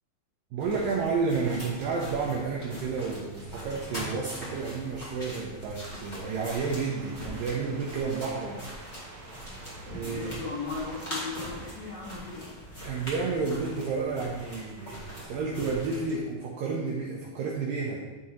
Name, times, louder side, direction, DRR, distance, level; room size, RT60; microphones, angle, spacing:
voice 1, 0.5-8.6 9.9-10.3 12.8-18.0, right 4 dB, 75° right, -2 dB, 2.2 m, -31 dB
sound 1, 0.6-16.2, equal, 20° left, 1.2 m, -42 dB
sound 2, 6.2-12.6, right 2 dB, 60° right, 1.7 m, -49 dB
voice 2, 10.0-12.5, left 4 dB, 65° left, -7 dB, 1.8 m, -37 dB
10.5 x 3.8 x 4.4 m, 1.3 s
omnidirectional pair, 4.6 m